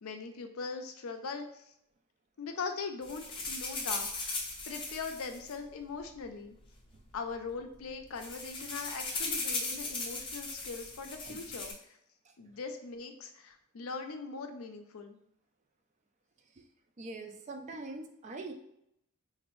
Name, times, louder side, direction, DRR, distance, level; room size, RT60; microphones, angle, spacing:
voice 1, 0.0-1.7 2.4-4.4 4.7-6.6 7.1-11.7 12.4-15.2, left 4 dB, 70° left, 6 dB, 0.5 m, -41 dB
sound 1, 3.0-6.2 7.1-7.2 7.4-7.6 7.9-11.7, left 3 dB, 20° left, 0.6 m, -38 dB
voice 2, 17.0-18.5, right 2 dB, 30° right, 4 dB, 0.4 m, -43 dB
4.0 x 2.6 x 3.0 m, 0.75 s
head